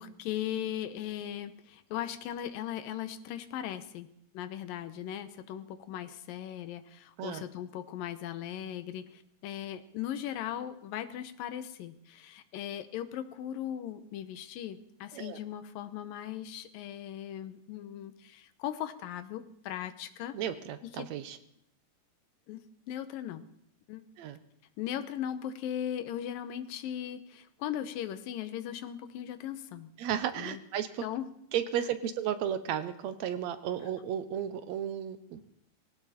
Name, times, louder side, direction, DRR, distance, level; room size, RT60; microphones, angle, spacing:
voice 1, 0.0-4.1 4.3-20.4 21.0-21.1 22.5-23.5 23.9-24.0 24.8-29.9 30.4-30.6 31.0-31.3, left 10 dB, 90° left, 12 dB, 2.7 m, -38 dB
voice 2, 20.3-21.4 24.2-24.4 30.0-31.1 31.5-35.4, right 9 dB, 70° right, 11 dB, 1.8 m, -34 dB
19.0 x 17.5 x 4.3 m, 0.72 s
omnidirectional pair, 3.9 m